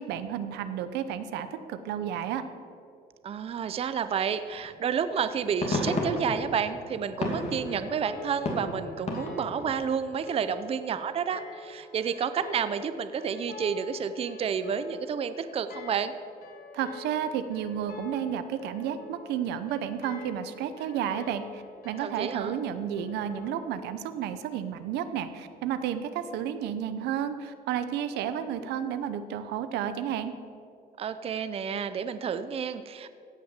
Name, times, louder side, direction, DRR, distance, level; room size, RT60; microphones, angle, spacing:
voice 1, 0.0-2.4 16.7-30.3, right 9 dB, 85° right, 11 dB, 0.8 m, -32 dB
voice 2, 3.2-16.1 22.0-22.5 31.0-33.1, right 7 dB, 35° right, 12 dB, 0.5 m, -30 dB
sound 1, 4.5-4.7 5.2-9.8, left 2 dB, 40° left, 2.7 m, -33 dB
sound 2, 7.4-23.6, left 5 dB, 60° left, 1.7 m, -47 dB
16.5 x 5.9 x 7.4 m, 2.5 s
cardioid pair, 110°, 17 cm